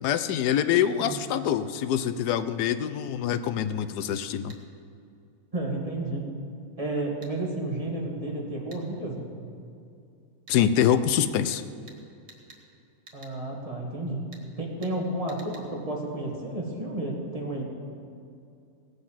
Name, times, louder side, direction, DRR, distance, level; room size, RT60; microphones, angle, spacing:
voice 1, 0.0-4.6 10.5-11.6, left 9 dB, 85° left, 12 dB, 1.2 m, -25 dB
sound 1, 4.5-4.6 7.2-7.4 8.7-8.8 10.5-10.6 11.9-12.0 12.3-12.6 13.1-13.4 14.3-14.5 14.8-15.0 15.3-15.7, right 3 dB, 80° right, 2.3 m, -50 dB
voice 2, 5.5-6.2 6.8-9.2 13.1-14.3 14.6-17.6, right 1 dB, 20° right, -2 dB, 2.1 m, -31 dB
18.0 x 7.9 x 7.4 m, 2.5 s
omnidirectional pair, 1.7 m